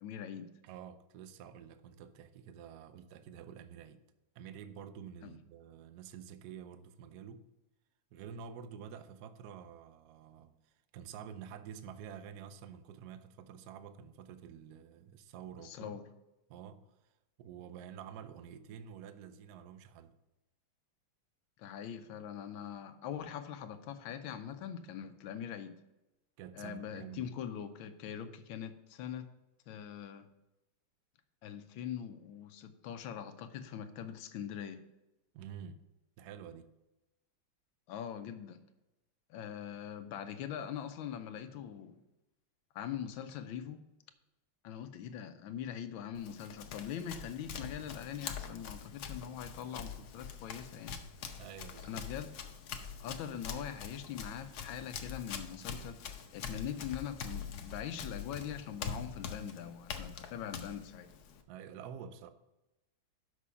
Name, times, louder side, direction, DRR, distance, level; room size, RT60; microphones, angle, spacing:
voice 1, 0.0-0.5 5.2-5.3 15.6-16.0 21.6-25.8 26.5-29.3 29.7-30.3 31.4-34.8 37.9-38.6 39.3-42.0 42.7-43.8 44.6-51.0 51.8-52.4 53.0-61.1, left 9 dB, 80° left, 1.4 m, -42 dB
voice 2, 0.6-4.0 4.3-7.4 8.1-16.0 16.5-16.8 17.4-20.1 26.4-27.3 35.3-35.8 36.2-36.7 51.4-52.0 61.5-62.3, right 8 dB, 70° right, 0.9 m, -49 dB
Run, 46.1-61.4, left 6 dB, 60° left, 1.1 m, -44 dB
6.2 x 6.0 x 5.6 m
omnidirectional pair, 2.2 m